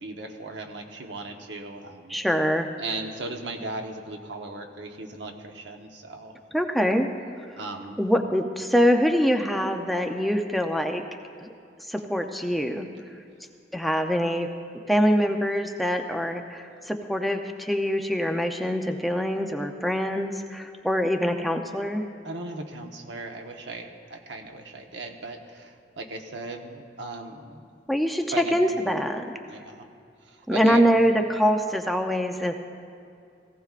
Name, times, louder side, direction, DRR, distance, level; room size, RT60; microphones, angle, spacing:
voice 1, 0.0-2.2 2.8-6.3 7.5-8.0 22.2-27.6 28.3-28.6 29.4-29.8 30.2-30.8, right 3 dB, 85° right, 3 dB, 1.2 m, -37 dB
voice 2, 2.1-2.7 6.5-7.1 8.0-11.0 11.4-11.5 11.9-12.9 13.7-14.5 14.9-22.0 27.9-28.2 28.5-29.2 30.5-32.6, equal, ahead, 4 dB, 0.6 m, -24 dB
18.0 x 16.5 x 2.5 m, 2.4 s
head